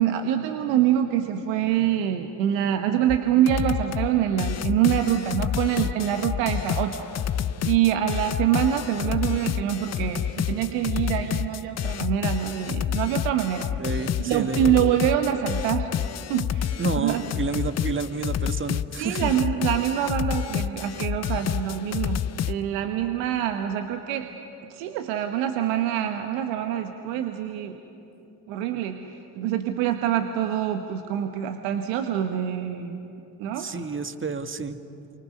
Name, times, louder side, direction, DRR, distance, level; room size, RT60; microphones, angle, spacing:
voice 1, 0.0-7.1 7.6-13.7 14.2-16.0 16.3-17.2 19.0-24.3 24.7-27.8 28.5-33.0 33.4-33.7, right 10 dB, 70° right, 6 dB, 1.2 m, -25 dB
sound 1, 3.1-3.2 3.5-4.1 4.4-22.6, left 9 dB, 35° left, 0.7 m, -28 dB
voice 2, 13.7-14.7 16.8-19.3 33.5-34.8, right 4 dB, 25° right, 9 dB, 1.5 m, -30 dB
28.5 x 24.5 x 5.4 m, 2.8 s
hypercardioid pair, 50°, 46 cm